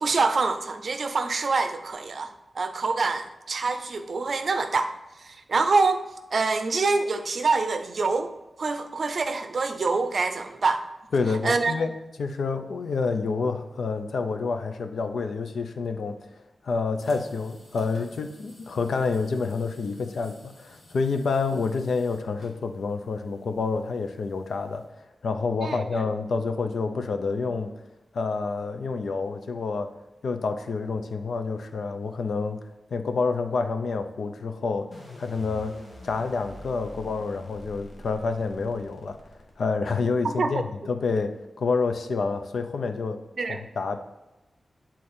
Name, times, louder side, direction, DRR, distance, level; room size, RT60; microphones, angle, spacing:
voice 1, 0.0-6.0 6.3-8.3 8.6-10.9 11.4-11.7 25.6-26.0 40.2-40.6 43.4-43.6, right 4 dB, 55° right, 8 dB, 0.5 m, -26 dB
voice 2, 11.1-11.9 12.2-16.3 16.6-24.8 25.2-27.7 28.1-29.9 30.2-34.9 35.2-39.2 39.6-43.2 43.5-44.0, left 4 dB, 85° left, 8 dB, 0.6 m, -28 dB
sound 1, 17.0-24.8, left 1 dB, 65° left, 2.0 m, -54 dB
sound 2, 34.9-40.0, left 1 dB, 45° left, 1.4 m, -45 dB
8.4 x 3.8 x 4.3 m, 0.99 s
wide cardioid pair, 155°, 0 cm